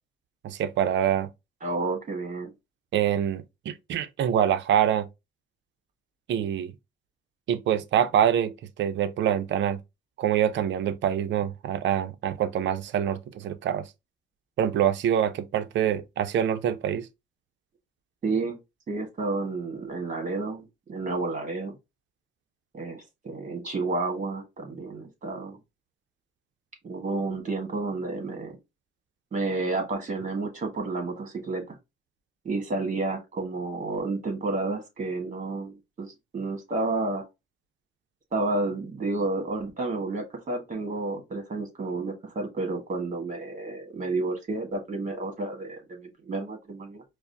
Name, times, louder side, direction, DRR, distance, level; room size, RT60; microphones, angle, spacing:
voice 1, 0.4-1.3 2.9-5.1 6.3-6.7 7.5-9.8 10.2-13.9 14.6-17.1, right 9 dB, 65° right, 0.5 m, -25 dB
voice 2, 1.6-2.5 18.2-18.6 18.9-21.7 22.7-25.6 26.8-28.6 29.3-31.8 32.4-37.2 38.3-47.0, right 3 dB, 40° right, 1.4 m, -31 dB
4.7 x 2.1 x 2.6 m
cardioid pair, 90°, 20 cm